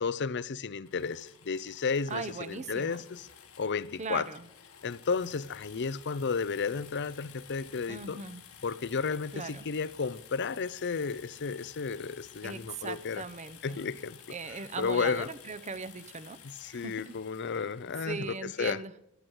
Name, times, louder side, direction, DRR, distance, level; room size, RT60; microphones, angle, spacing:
voice 1, 0.0-3.3 3.6-4.3 4.8-8.2 8.6-13.2 13.6-14.2 14.8-15.3 16.4-18.8, left 5 dB, 55° left, 0.6 m, -33 dB
sound 1, 0.8-18.6, left 8 dB, 90° left, 1.9 m, -53 dB
voice 2, 2.1-3.1 4.0-4.5 7.9-8.4 9.3-9.7 12.4-13.8 14.3-17.2 18.1-18.9, right 4 dB, 30° right, 0.8 m, -39 dB
12.0 x 11.5 x 8.0 m
head